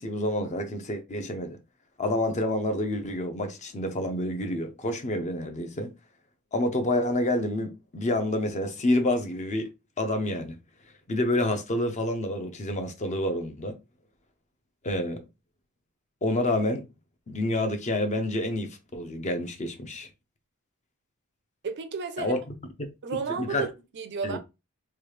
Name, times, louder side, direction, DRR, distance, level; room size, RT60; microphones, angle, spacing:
voice 1, 0.0-1.6 2.0-5.9 6.5-9.7 10.0-10.6 11.1-13.7 14.8-15.2 16.2-16.8 17.3-20.1 22.2-22.4 23.3-23.7 24.2-24.4, left 1 dB, 35° left, 0.6 m, -28 dB
voice 2, 21.6-22.3 23.0-24.4, right 5 dB, 50° right, 0.5 m, -33 dB
3.2 x 2.3 x 3.2 m
head